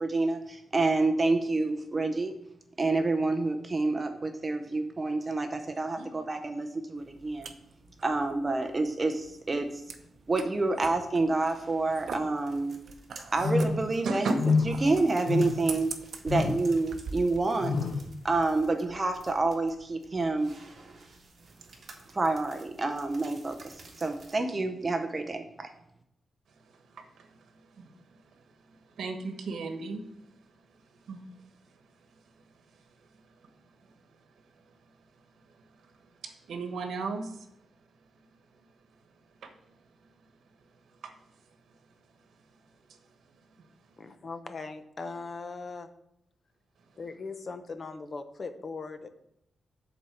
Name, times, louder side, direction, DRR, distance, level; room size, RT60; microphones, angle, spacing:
voice 1, 0.0-2.3 2.8-7.6 8.0-9.8 10.3-12.8 13.3-14.3 14.6-15.9 16.2-17.8 18.2-20.6 22.1-25.7, right 3 dB, 25° right, 6 dB, 0.6 m, -28 dB
sound 1, 7.0-17.4, right 5 dB, 60° right, 0.8 m, -43 dB
sound 2, 11.1-24.3, right 3 dB, 40° right, 1.8 m, -54 dB
sound 3, 13.4-13.9 14.4-14.8 15.3-15.8 16.3-16.7 17.6-18.1, left 4 dB, 90° left, 0.7 m, -27 dB
voice 2, 29.0-30.0 31.1-31.2 36.2-37.3 39.4-39.5 41.0-41.1, right 3 dB, 80° right, 6 dB, 1.2 m, -33 dB
voice 3, 44.0-45.9 47.0-49.1, left 4 dB, 35° left, 9 dB, 0.7 m, -39 dB
7.9 x 4.2 x 6.9 m, 0.78 s
wide cardioid pair, 145°, 0 cm